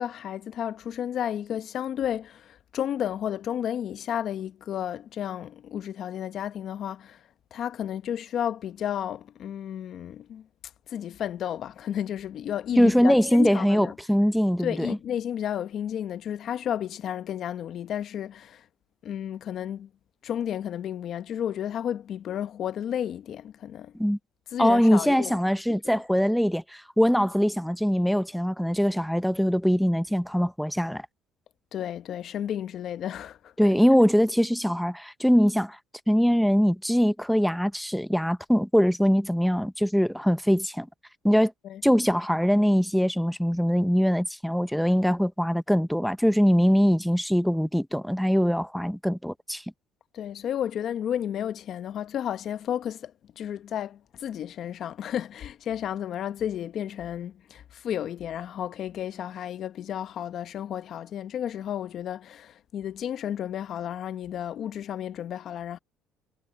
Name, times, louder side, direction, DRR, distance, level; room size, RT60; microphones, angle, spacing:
voice 1, 0.0-7.2 7.5-10.5 10.9-13.9 14.6-18.6 19.0-19.9 20.2-23.9 24.5-25.4 25.7-26.0 31.7-33.7 41.6-41.8 50.1-65.8, left 10 dB, 55° left, 0.8 m, -32 dB
voice 2, 12.8-15.0 24.0-24.2 24.6-31.1 33.6-35.8 36.1-40.9 41.2-41.5 41.8-49.6, equal, ahead, 0.6 m, -22 dB
cardioid pair, 105°, 0 cm